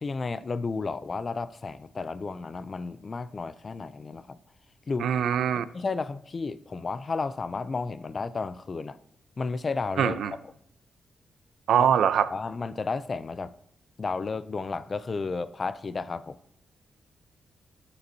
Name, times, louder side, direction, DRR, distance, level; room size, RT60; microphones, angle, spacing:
voice 1, 0.0-4.4 4.9-5.1 5.6-9.0 9.4-10.2 11.8-11.9 12.3-13.5 14.0-16.4, left 4 dB, 30° left, 15 dB, 0.3 m, -32 dB
voice 2, 5.0-5.6 10.0-10.3 11.7-12.3, right 8 dB, 80° right, 13 dB, 0.5 m, -23 dB
18.5 x 6.8 x 2.7 m, 0.71 s
wide cardioid pair, 175°, 0 cm